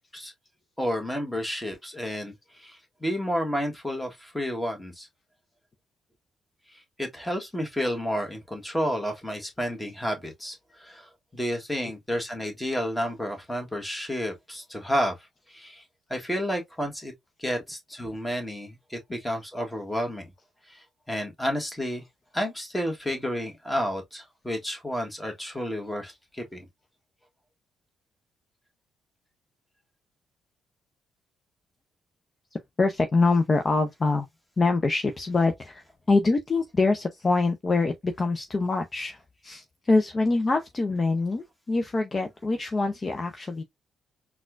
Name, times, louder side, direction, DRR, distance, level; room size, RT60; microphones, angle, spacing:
voice 1, 0.8-5.1 7.0-15.2 15.5-15.8 16.1-17.1 17.4-20.2 20.7-20.8 21.1-22.0 22.3-26.7, equal, 10° left, 1.3 m, -31 dB
voice 2, 32.8-34.3 34.6-43.6, left 3 dB, 30° left, 0.5 m, -25 dB
4.1 x 2.3 x 2.4 m
cardioid pair, 90°, 0 cm